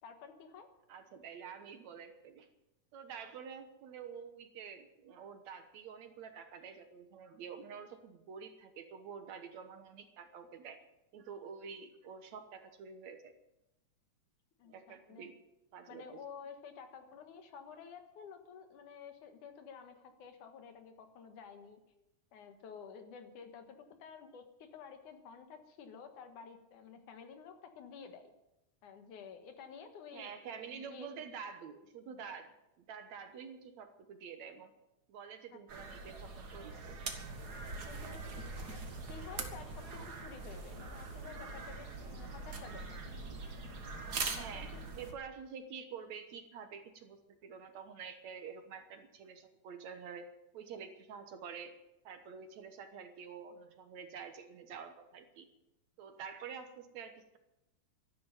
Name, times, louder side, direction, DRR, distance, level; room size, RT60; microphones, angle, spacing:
voice 1, 0.0-0.7 14.6-15.3 15.9-21.8 22.3-28.3 28.8-30.3 30.7-31.1 35.5-35.6 37.9-43.0 44.1-44.8, left 6 dB, 75° left, 7 dB, 2.9 m, -51 dB
voice 2, 0.9-2.5 2.9-10.8 11.1-13.4 14.6-15.4 15.7-16.2 30.1-34.7 35.1-36.9 44.3-50.3 50.5-51.8 52.0-55.5 56.0-57.4, right 6 dB, 65° right, 8 dB, 2.3 m, -48 dB
sound 1, 35.7-45.1, right 3 dB, 40° right, 1.7 m, -43 dB
12.5 x 12.0 x 9.0 m, 0.93 s
omnidirectional pair, 3.7 m